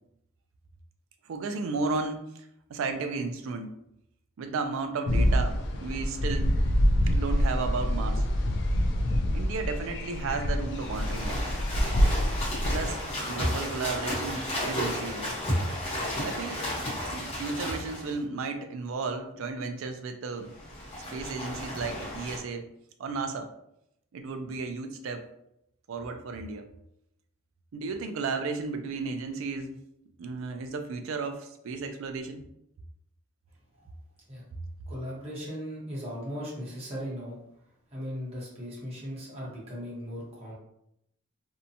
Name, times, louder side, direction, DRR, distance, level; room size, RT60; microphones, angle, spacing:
voice 1, 1.3-2.3 2.7-3.7 4.4-6.5 7.1-8.2 9.3-11.4 12.7-15.3 16.2-16.6 17.1-20.5 21.1-22.7 23.0-23.5 24.1-25.2 25.9-26.7 27.7-29.8 30.2-32.4, right 4 dB, 65° right, 7 dB, 0.3 m, -34 dB
sound 1, 5.1-12.9, equal, 50° left, 0.3 m, -26 dB
sound 2, 10.7-18.2 20.4-22.4, left 1 dB, 25° left, 0.8 m, -33 dB
voice 2, 34.9-37.4 37.9-40.5, equal, 25° right, -6 dB, 0.9 m, -37 dB
2.6 x 2.2 x 2.6 m, 0.79 s
head